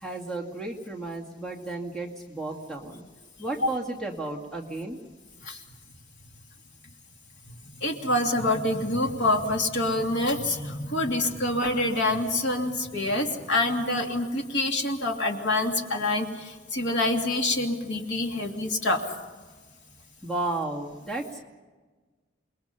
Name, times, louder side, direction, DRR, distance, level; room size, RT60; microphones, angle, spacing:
voice 1, 0.0-3.0 3.4-5.0 20.2-21.4, right 2 dB, 5° left, 0 dB, 2.2 m, -33 dB
voice 2, 7.8-16.3 16.7-19.0, left 2 dB, 75° left, 2 dB, 2.7 m, -26 dB
28.5 x 21.5 x 5.7 m, 1.4 s
head